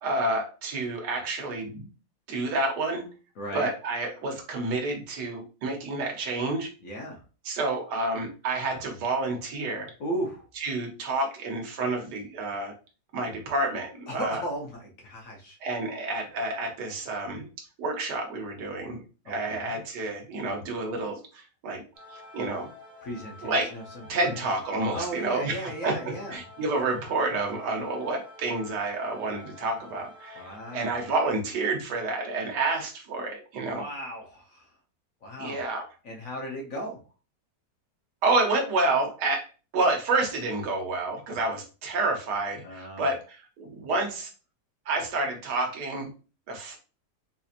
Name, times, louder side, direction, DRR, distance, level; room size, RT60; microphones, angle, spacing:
voice 1, 0.0-1.9 2.3-3.0 3.5-6.7 7.4-9.9 10.6-12.7 13.1-14.4 15.6-17.5 17.8-21.8 22.1-22.7 23.4-23.7 24.1-25.9 26.3-33.8 35.4-35.8 38.2-44.3 44.9-46.1 46.5-46.8, right 2 dB, 75° right, 2 dB, 1.5 m, -29 dB
voice 2, 3.4-3.7 6.8-7.2 10.0-10.5 14.1-15.6 19.2-19.8 23.0-24.4 24.9-26.4 30.3-30.9 33.6-34.7 35.2-35.6 36.0-37.0 42.6-43.1, equal, 55° left, 0 dB, 1.1 m, -36 dB
sound 1, 21.9-31.3, left 2 dB, 35° right, 1.4 m, -49 dB
4.2 x 2.8 x 2.4 m, 0.34 s
omnidirectional pair, 1.8 m